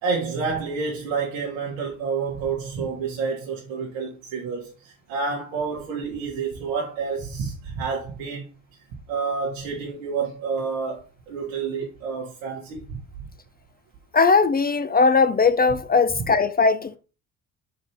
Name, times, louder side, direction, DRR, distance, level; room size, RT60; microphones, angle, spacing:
voice 1, 0.0-8.5 9.1-13.0 16.1-16.3, right 5 dB, 85° right, 1.5 m, -29 dB
voice 2, 14.1-17.0, left 4 dB, 25° left, 0.5 m, -19 dB
5.4 x 4.7 x 4.4 m
hypercardioid pair, 60°, 38 cm